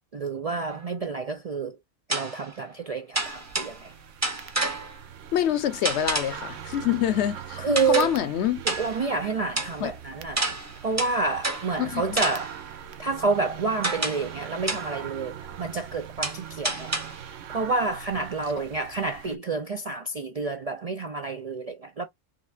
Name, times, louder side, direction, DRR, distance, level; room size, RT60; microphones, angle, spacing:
voice 1, 0.1-1.8 2.1-3.9 7.6-8.1 8.7-10.5 10.8-12.6 13.0-17.0 17.5-22.1, right 4 dB, 55° right, 0.4 m, -29 dB
sound 1, 0.7-0.8 2.1-2.5 3.2-3.9 4.2-5.0 5.9-6.5 7.8-8.3 8.7-9.1 9.6-9.8 10.4-11.8 12.2-12.7 13.8-14.4 14.7-15.0 16.2-17.3, right 2 dB, 15° right, 0.7 m, -30 dB
sound 2, 3.1-19.4, right 9 dB, 80° right, 1.0 m, -42 dB
voice 2, 5.3-8.6 9.8-9.9 11.8-12.0, left 10 dB, 65° left, 1.0 m, -26 dB
4.9 x 3.3 x 2.4 m
omnidirectional pair, 1.3 m